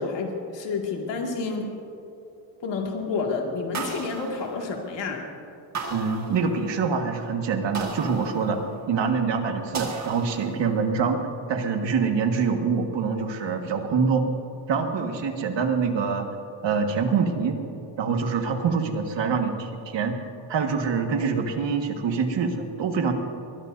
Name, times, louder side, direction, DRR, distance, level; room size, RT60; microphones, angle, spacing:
voice 1, 0.0-1.6 2.6-5.2, left 4 dB, 65° left, 0 dB, 2.3 m, -29 dB
sound 1, 3.7-5.1 5.7-6.9 7.7-9.0 9.7-10.9, right 4 dB, 35° right, 1.8 m, -36 dB
voice 2, 5.9-8.6 8.9-11.2 11.5-14.2 14.7-16.3 16.6-17.6 18.0-20.2 20.5-23.1, right 5 dB, 65° right, 4 dB, 1.7 m, -25 dB
22.0 x 21.5 x 2.7 m, 2.8 s
cardioid pair, 175°, 48 cm